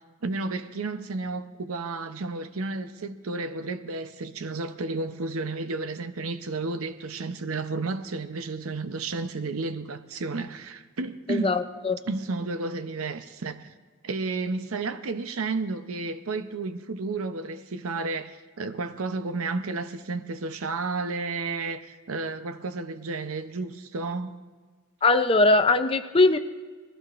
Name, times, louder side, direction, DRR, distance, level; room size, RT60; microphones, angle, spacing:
voice 1, 0.0-11.6 12.1-13.7 14.0-24.3, right 3 dB, 85° right, 0.7 m, -32 dB
voice 2, 11.3-12.0 25.0-26.4, left 3 dB, 25° left, 0.5 m, -21 dB
20.0 x 14.5 x 2.5 m
head